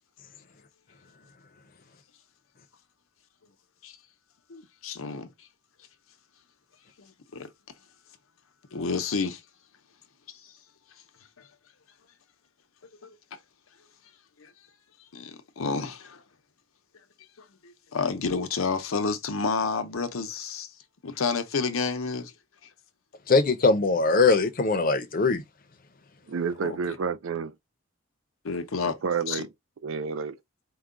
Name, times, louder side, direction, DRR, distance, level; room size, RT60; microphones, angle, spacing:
voice 1, 4.5-5.3 7.0-7.5 8.7-9.4 10.3-10.5 11.4-11.5 13.0-13.1 14.4-14.5 15.1-16.2 17.6-20.7 21.0-22.3 26.6-26.8 28.4-29.0 29.3-29.4, left 4 dB, 90° left, 0.7 m, -30 dB
voice 2, 23.3-25.4, left 3 dB, 45° left, 0.6 m, -21 dB
voice 3, 26.3-27.6 28.8-29.5 29.8-30.4, right 6 dB, 75° right, 0.5 m, -30 dB
4.7 x 2.2 x 3.7 m
head